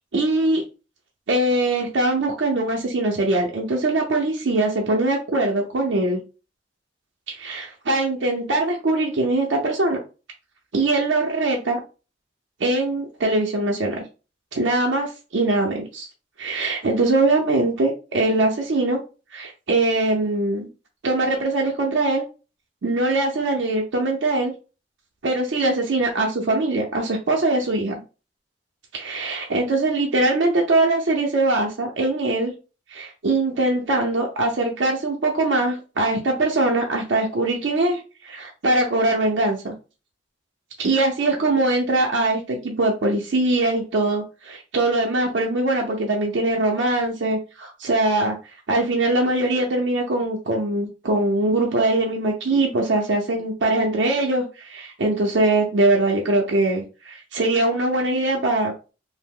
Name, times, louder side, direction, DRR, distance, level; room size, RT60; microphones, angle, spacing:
voice 1, 0.1-0.6 1.3-6.2 7.3-10.0 10.7-11.8 12.6-14.0 14.5-16.1 16.4-19.0 19.3-20.7 21.0-22.2 22.8-24.5 25.2-28.0 28.9-32.5 32.9-39.7 40.8-48.4 48.7-58.7, right 2 dB, 75° right, 0 dB, 0.5 m, -22 dB
2.8 x 2.0 x 3.6 m, 0.33 s
head